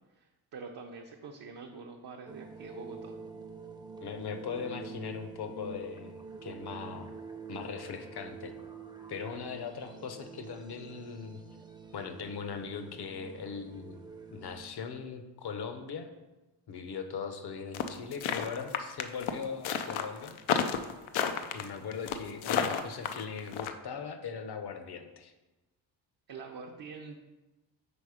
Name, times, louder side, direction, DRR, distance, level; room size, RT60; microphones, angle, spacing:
voice 1, 0.2-3.2 26.3-27.2, right 4 dB, 50° right, 1 dB, 0.7 m, -45 dB
sound 1, 2.3-14.7, right 5 dB, 10° right, 0.6 m, -47 dB
voice 2, 4.0-7.1 7.5-8.5 9.1-11.4 11.9-16.1 16.7-20.8 21.5-25.3, left 6 dB, 55° left, 7 dB, 0.8 m, -40 dB
sound 2, 17.7-23.7, left 8 dB, 85° left, 0.6 m, -31 dB
5.3 x 3.9 x 4.9 m, 1.1 s
cardioid pair, 85°, 46 cm